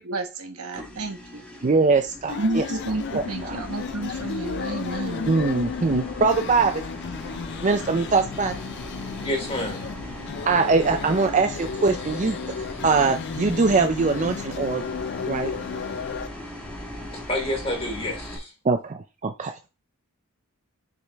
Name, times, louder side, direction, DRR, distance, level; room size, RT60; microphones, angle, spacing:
voice 1, 0.0-1.4 2.4-5.3, right 2 dB, 80° right, 1.2 m, -30 dB
sound 1, 0.7-18.4, equal, 5° left, 1.5 m, -39 dB
voice 2, 1.6-2.6 3.1-3.6 5.3-6.7 7.6-8.5 10.5-12.4 12.8-14.8 15.3-15.5 18.6-19.5, right 4 dB, 35° right, 0.4 m, -22 dB
sound 2, 2.3-16.3, left 6 dB, 50° left, 0.3 m, -34 dB
voice 3, 9.2-9.8 17.1-18.5, left 1 dB, 25° left, 3.2 m, -29 dB
6.5 x 5.1 x 3.5 m
head